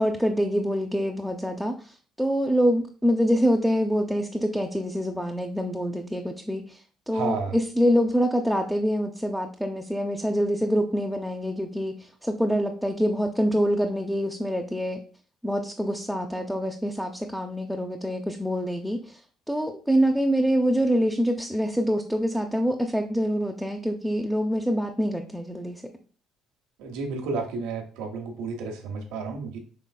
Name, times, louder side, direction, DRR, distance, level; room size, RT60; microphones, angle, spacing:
voice 1, 0.0-6.8 7.1-15.0 15.4-19.2 19.5-25.8, equal, ahead, 3 dB, 0.4 m, -25 dB
voice 2, 7.1-7.6 26.8-29.6, right 4 dB, 85° right, 2 dB, 0.8 m, -31 dB
5.2 x 3.2 x 2.3 m, 0.41 s
supercardioid pair, 80°, 0 cm